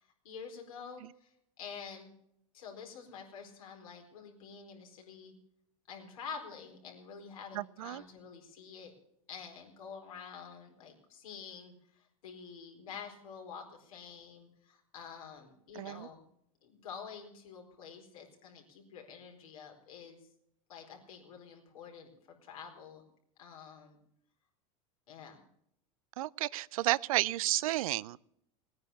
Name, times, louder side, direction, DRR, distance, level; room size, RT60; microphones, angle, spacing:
voice 1, 0.0-2.1 2.5-5.3 5.9-8.9 9.3-16.3 16.6-20.2 20.7-23.0 23.4-24.0 25.1-25.4, left 6 dB, 80° left, 1 dB, 4.4 m, -48 dB
voice 2, 7.5-8.0 15.7-16.1 26.2-28.2, right 16 dB, 80° right, 21 dB, 0.5 m, -32 dB
18.0 x 9.7 x 6.8 m, 0.74 s
hypercardioid pair, 100°, 18 cm